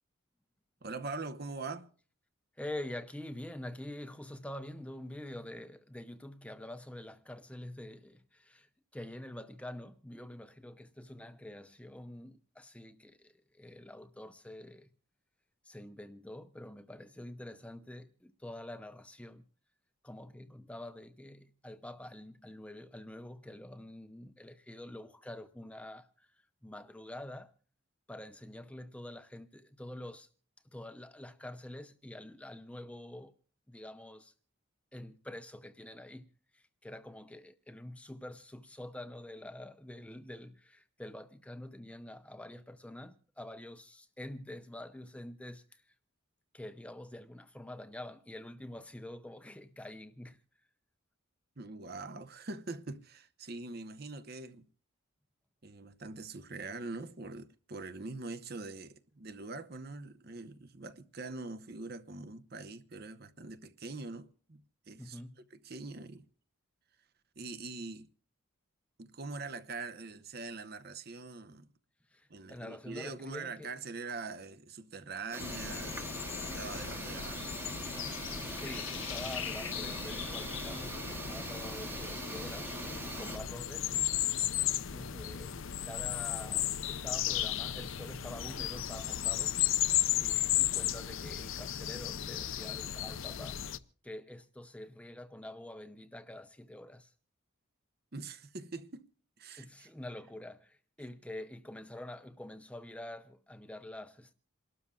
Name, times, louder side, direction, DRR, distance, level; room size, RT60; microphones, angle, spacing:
voice 1, 0.8-1.9 51.6-54.7 55.6-64.6 64.9-65.2 65.5-66.2 67.4-68.1 69.0-71.7 72.3-76.0 76.4-77.5 98.1-99.1 99.4-99.9, right 3 dB, 45° right, 0.8 m, -43 dB
voice 2, 2.5-14.9 15.6-19.4 20.0-27.5 28.1-30.3 30.6-33.3 33.7-34.3 34.9-36.3 36.5-45.9 46.5-50.4 65.0-65.4 72.1-73.7 77.0-77.3 78.5-84.4 84.9-89.6 90.2-93.7 94.0-97.1 99.6-104.3, left 1 dB, 5° left, 0.5 m, -46 dB
sound 1, 75.3-83.4, right 2 dB, 10° right, 1.0 m, -42 dB
sound 2, 75.4-93.8, left 12 dB, 70° left, 0.6 m, -35 dB
28.0 x 12.5 x 2.3 m
head